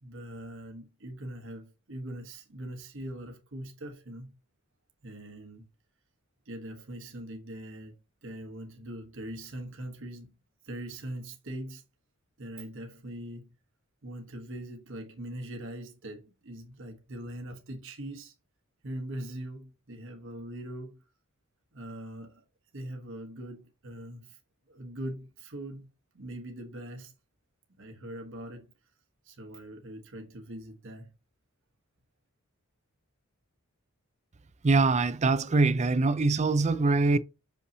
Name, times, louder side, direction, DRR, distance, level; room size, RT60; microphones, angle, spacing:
voice 1, 0.0-4.3 5.0-5.7 6.4-7.9 8.2-10.3 10.6-11.8 12.4-13.5 14.0-18.3 18.8-21.0 21.7-22.4 22.7-24.4 24.7-25.9 26.1-27.1 27.8-28.7 29.2-31.1, right 1 dB, 60° right, 1.2 m, -41 dB
voice 2, 34.6-37.2, right 3 dB, 30° right, 0.5 m, -23 dB
6.4 x 5.5 x 2.8 m
head